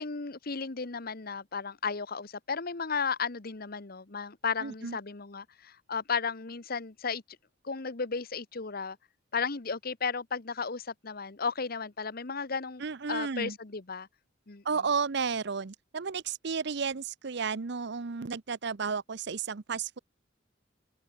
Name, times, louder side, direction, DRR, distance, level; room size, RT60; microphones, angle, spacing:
voice 1, 0.0-7.2 7.6-9.0 9.3-12.8 13.1-14.1 14.5-14.6, left 5 dB, 55° left, 1.2 m, -34 dB
voice 2, 4.6-5.0 12.8-13.6 14.6-20.0, right 5 dB, 60° right, 0.7 m, -33 dB
open air
head